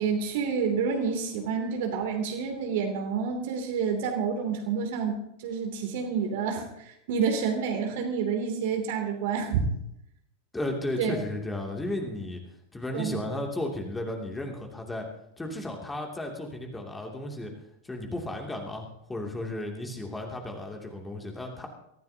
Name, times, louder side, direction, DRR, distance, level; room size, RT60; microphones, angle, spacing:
voice 1, 0.0-9.6 11.0-11.1 12.9-13.2, right 6 dB, 50° right, 3 dB, 2.9 m, -29 dB
voice 2, 10.5-12.4 12.7-15.1 15.4-17.5 17.8-21.7, left 1 dB, 10° left, 1 dB, 2.8 m, -34 dB
23.5 x 15.0 x 2.9 m, 0.82 s
figure-of-eight pair, 90°, 0 cm